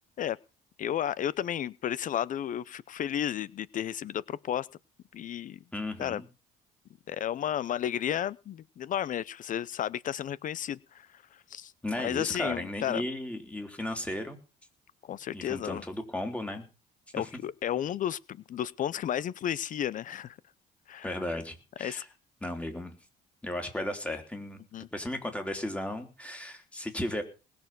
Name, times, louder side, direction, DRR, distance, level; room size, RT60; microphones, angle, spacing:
voice 1, 0.8-4.7 5.1-5.6 6.0-6.2 7.1-11.7 12.0-13.0 15.0-15.8 17.1-20.4 20.9-21.2 21.8-22.0 24.7-24.9, left 10 dB, 50° left, 21 dB, 0.6 m, -33 dB
voice 2, 5.7-6.3 11.8-14.4 15.3-16.7 17.2-17.3 21.0-22.1 22.4-22.9 23.4-24.6 24.9-27.2, left 1 dB, 5° left, 6 dB, 3.7 m, -35 dB
20.0 x 7.0 x 6.0 m, 0.33 s
cardioid pair, 110°, 17 cm